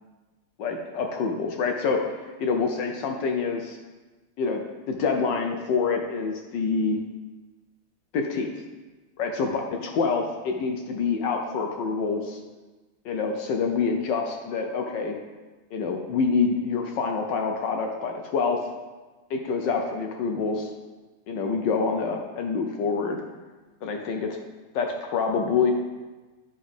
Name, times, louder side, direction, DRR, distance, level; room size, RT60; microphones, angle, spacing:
voice 1, 0.6-2.1 2.4-3.8 4.4-4.6 4.9-7.0 8.1-8.5 9.2-9.5 9.8-12.4 13.0-15.2 15.7-18.6 19.3-20.7 21.3-23.2 23.8-24.4 24.7-25.7, left 5 dB, 70° left, 3 dB, 1.2 m, -26 dB
11.5 x 5.0 x 3.5 m, 1.3 s
omnidirectional pair, 2.3 m